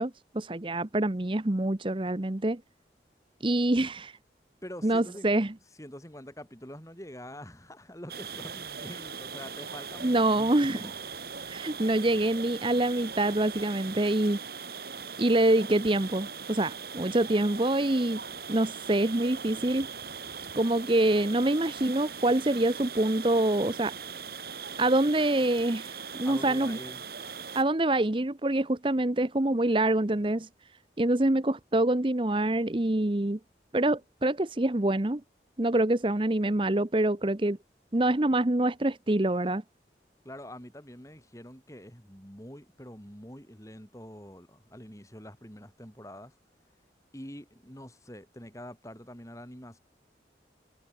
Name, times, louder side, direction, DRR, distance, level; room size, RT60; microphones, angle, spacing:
voice 1, 0.0-2.6 3.4-4.1 4.8-5.5 10.0-10.9 11.5-14.4 15.2-18.2 18.5-19.9 20.6-23.9 24.8-26.8 27.5-30.5 31.0-33.4 33.7-35.2 35.6-37.6 37.9-39.6, right 1 dB, 30° right, 0.9 m, -26 dB
voice 2, 4.6-5.3 5.8-10.9 26.2-27.0 40.2-46.3 47.1-49.8, equal, 20° left, 7.2 m, -45 dB
sound 1, 8.1-27.6, right 6 dB, 55° right, 2.8 m, -40 dB
head